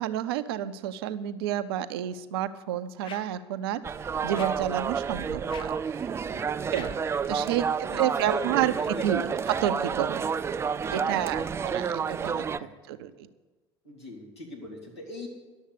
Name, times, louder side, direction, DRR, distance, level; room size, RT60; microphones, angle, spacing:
voice 1, 0.0-6.1 6.7-7.0 7.3-10.3 10.9-13.3, right 11 dB, 65° right, 13 dB, 0.6 m, -30 dB
sound 1, 3.0-3.4 4.3-4.7 5.5-5.9 6.7-7.1, left 6 dB, 35° left, 0.8 m, -45 dB
sound 2, 3.8-12.6, right 6 dB, 20° right, 0.3 m, -30 dB
voice 2, 6.3-6.7 7.4-8.4 8.9-9.3 11.0-11.5 12.6-12.7 13.8-15.3, left 2 dB, 85° left, -5 dB, 3.2 m, -41 dB
11.5 x 7.2 x 8.3 m, 1.2 s
figure-of-eight pair, 65°, 14 cm